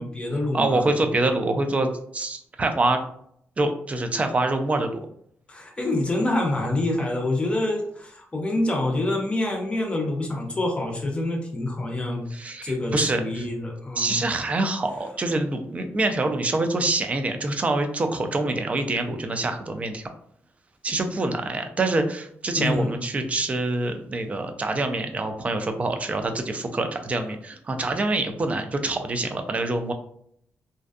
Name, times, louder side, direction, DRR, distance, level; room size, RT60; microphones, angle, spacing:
voice 1, 0.0-0.9 5.5-12.2 12.6-14.2 22.6-23.0, left 1 dB, 20° left, 1 dB, 0.6 m, -26 dB
voice 2, 0.5-3.0 3.6-4.9 12.3-13.5 14.0-20.0 20.8-29.9, right 2 dB, 25° right, 6 dB, 0.3 m, -25 dB
2.5 x 2.2 x 2.3 m, 0.68 s
wide cardioid pair, 135°, 5 cm